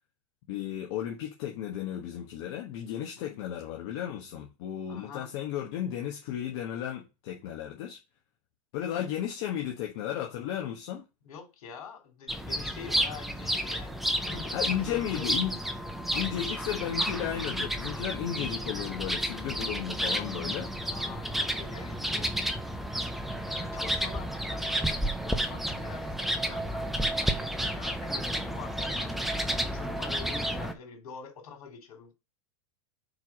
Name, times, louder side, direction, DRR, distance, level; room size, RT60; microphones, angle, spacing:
voice 1, 0.5-8.0 8.7-11.0 14.5-15.6 16.1-20.7, left 10 dB, 45° left, 1.2 m, -34 dB
voice 2, 4.9-5.3 11.2-15.3 16.0-16.5 20.9-22.5 23.0-26.9 27.2-27.3 27.6-32.2, left 6 dB, 80° left, 3.3 m, -46 dB
sound 1, 12.3-30.7, equal, ahead, 0.5 m, -31 dB
4.7 x 4.7 x 6.0 m
supercardioid pair, 165°, 18 cm